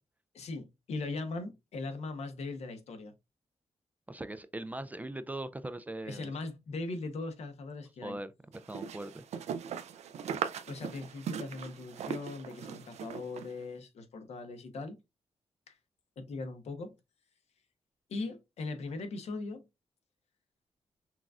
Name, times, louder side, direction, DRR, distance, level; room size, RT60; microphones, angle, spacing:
voice 1, 0.3-3.1 6.0-8.2 10.7-15.0 15.7-15.8 16.2-16.9 18.1-19.7, left 3 dB, 75° left, 1.0 m, -39 dB
voice 2, 4.1-6.3 8.0-8.3 8.7-9.2, right 1 dB, 15° right, 0.3 m, -40 dB
sound 1, 8.5-13.5, right 7 dB, 90° right, 0.4 m, -39 dB
5.9 x 2.4 x 2.4 m
wide cardioid pair, 115°, 11 cm